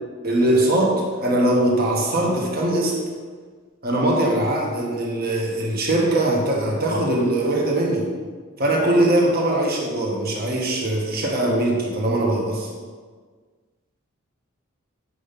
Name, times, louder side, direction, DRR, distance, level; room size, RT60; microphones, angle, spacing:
voice 1, 0.2-3.0 3.8-8.1 8.6-12.7, right 1 dB, 45° right, -2 dB, 1.5 m, -21 dB
7.9 x 5.6 x 5.3 m, 1.5 s
head